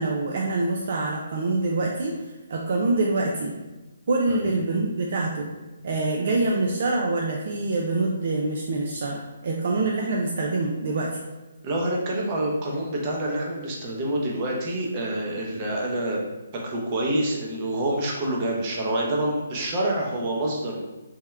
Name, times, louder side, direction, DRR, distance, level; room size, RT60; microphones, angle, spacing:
voice 1, 0.0-2.1 2.5-3.5 4.1-5.5 5.8-11.1, right 2 dB, 55° right, -1 dB, 0.4 m, -25 dB
voice 2, 11.6-16.2 16.5-20.8, right 1 dB, 30° right, -2 dB, 0.7 m, -27 dB
3.5 x 2.1 x 3.1 m, 1.1 s
figure-of-eight pair, 145°, 0 cm